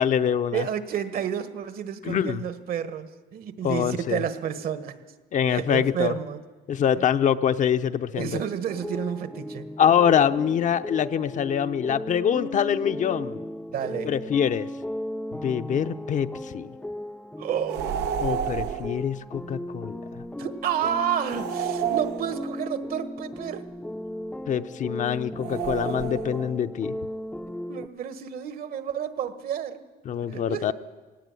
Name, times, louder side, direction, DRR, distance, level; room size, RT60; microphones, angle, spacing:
voice 1, 0.0-0.7 2.0-2.4 3.6-4.2 5.3-6.2 6.7-8.4 9.8-13.4 14.0-14.7 15.4-16.7 18.2-20.2 24.5-26.9 30.0-30.7, left 8 dB, 50° left, 9 dB, 0.8 m, -24 dB
voice 2, 0.5-4.9 5.5-6.4 7.0-7.1 8.2-9.7 13.7-14.1 17.4-17.8 20.4-23.7 27.7-29.9 30.3-30.7, right 8 dB, 60° right, 11 dB, 1.6 m, -30 dB
sound 1, 8.7-27.9, left 1 dB, 5° left, 0.6 m, -36 dB
sound 2, 17.7-19.0 21.3-22.7 25.4-26.5, right 10 dB, 90° right, 0.9 m, -30 dB
18.0 x 17.5 x 9.2 m, 1.3 s
cardioid pair, 110°, 17 cm